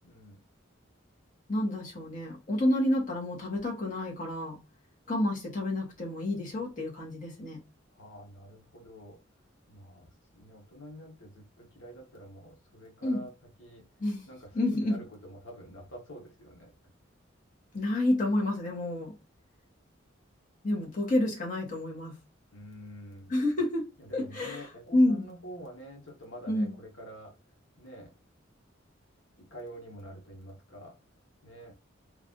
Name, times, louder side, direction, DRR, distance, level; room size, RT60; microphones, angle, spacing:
voice 1, 0.0-0.4 7.9-9.2 9.7-13.3 13.6-13.8 14.3-16.7 22.5-23.3 24.0-27.3 27.8-28.1 29.4-30.9 31.4-31.8, equal, 80° left, 1.3 m, -47 dB
voice 2, 1.5-4.6 5.1-7.6 13.0-13.2 14.0-14.2 14.5-15.0 17.7-19.1 20.6-22.1 23.3-23.9 24.1-24.6 24.9-25.3 26.5-26.7, left 1 dB, 40° left, 1.3 m, -29 dB
3.2 x 2.5 x 3.7 m
head